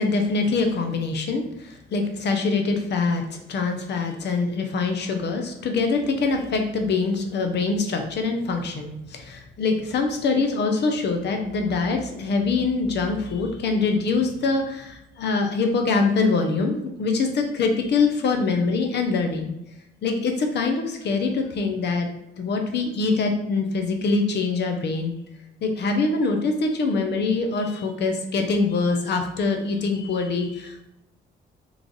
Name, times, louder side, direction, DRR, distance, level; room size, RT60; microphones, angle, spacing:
voice 1, 0.0-19.5 20.0-22.1 22.4-25.2 25.6-30.9, left 4 dB, 60° left, 4 dB, 0.7 m, -24 dB
3.2 x 2.5 x 3.8 m, 0.86 s
cardioid pair, 90°, 20 cm